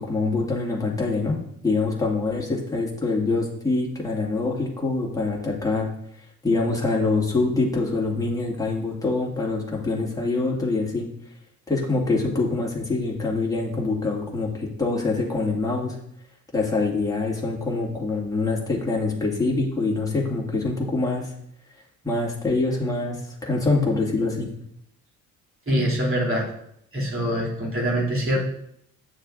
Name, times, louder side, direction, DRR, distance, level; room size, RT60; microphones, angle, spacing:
voice 1, 0.0-1.4 1.6-5.9 6.4-11.1 11.7-16.0 16.5-21.3 22.0-24.5, left 3 dB, 10° left, -4 dB, 2.1 m, -25 dB
voice 2, 25.7-26.5 26.9-28.4, equal, 30° right, -4 dB, 2.8 m, -24 dB
8.6 x 6.5 x 2.6 m, 0.73 s
figure-of-eight pair, 45°, 42 cm